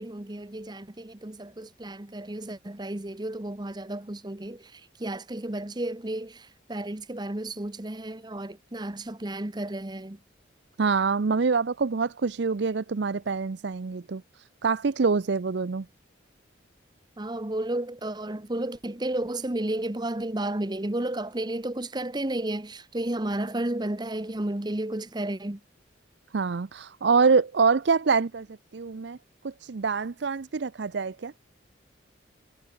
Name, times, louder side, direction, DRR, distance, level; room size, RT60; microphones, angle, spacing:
voice 1, 0.0-10.2 17.2-25.6, right 1 dB, 20° right, 0.9 m, -32 dB
voice 2, 10.8-14.2 14.6-15.8 26.3-28.5 28.7-29.2 29.4-31.3, right 5 dB, 60° right, 0.5 m, -25 dB
head